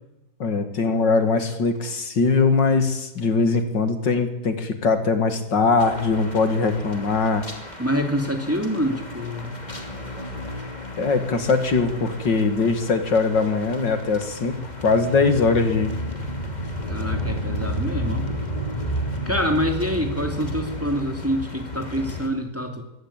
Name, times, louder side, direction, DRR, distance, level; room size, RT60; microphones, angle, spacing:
voice 1, 0.4-7.4 11.0-14.6 14.8-15.9, left 4 dB, 70° left, 9 dB, 2.7 m, -21 dB
sound 1, 5.8-22.3, equal, 20° left, 2.8 m, -32 dB
voice 2, 7.8-9.5 16.9-18.3 19.3-22.8, equal, 5° right, 5 dB, 2.8 m, -26 dB
22.0 x 17.5 x 9.0 m, 0.96 s
omnidirectional pair, 2.0 m